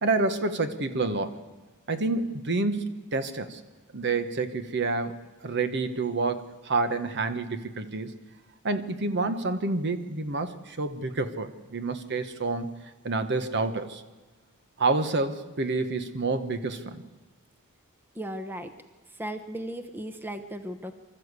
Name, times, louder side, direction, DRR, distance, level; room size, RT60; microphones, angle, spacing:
voice 1, 0.0-1.4 1.9-3.6 3.9-5.1 5.4-8.1 8.6-12.7 13.0-14.0 14.8-17.0, right 3 dB, 55° right, 9 dB, 1.2 m, -28 dB
voice 2, 18.1-18.7 19.2-20.9, equal, 10° right, 8 dB, 0.9 m, -36 dB
25.5 x 13.0 x 8.2 m, 1.2 s
head